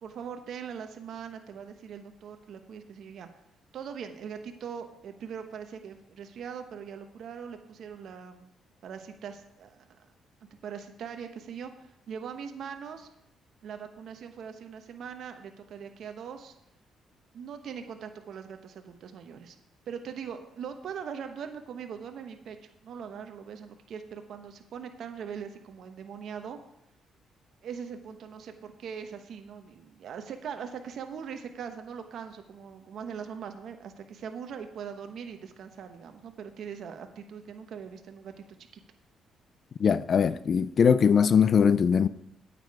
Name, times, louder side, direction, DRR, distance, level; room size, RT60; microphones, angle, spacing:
voice 1, 0.0-3.3 3.7-8.5 8.8-10.1 10.6-13.1 13.6-16.5 17.3-19.6 19.9-26.6 27.6-38.4 38.7-38.8, right 7 dB, 65° right, 1.0 m, -41 dB
voice 2, 39.8-42.1, left 7 dB, 50° left, 0.4 m, -21 dB
9.0 x 8.5 x 4.8 m
cardioid pair, 90°, 0 cm